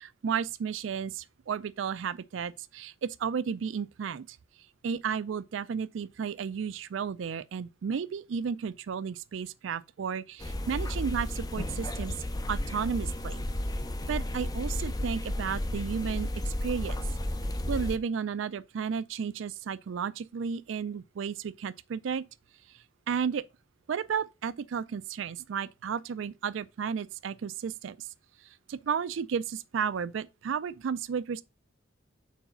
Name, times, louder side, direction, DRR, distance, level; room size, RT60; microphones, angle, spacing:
voice 1, 0.0-4.4 4.8-12.1 12.5-13.4 14.1-17.0 17.7-22.2 22.7-23.4 23.9-28.1 28.7-31.4, right 6 dB, 75° right, 0.4 m, -33 dB
sound 1, 10.4-18.0, left 1 dB, 20° left, 0.5 m, -33 dB
4.7 x 4.0 x 5.5 m
head